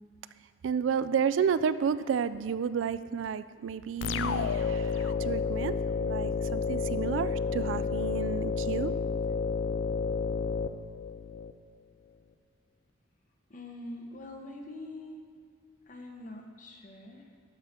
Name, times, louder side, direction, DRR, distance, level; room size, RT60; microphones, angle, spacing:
voice 1, 0.6-5.7 6.0-8.9, right 7 dB, 85° right, 14 dB, 0.3 m, -31 dB
sound 1, 4.0-11.5, left 5 dB, 80° left, 0.4 m, -30 dB
voice 2, 13.5-15.2 15.9-17.2, left 1 dB, 45° left, 2 dB, 1.1 m, -44 dB
13.0 x 5.6 x 4.3 m, 2.2 s
head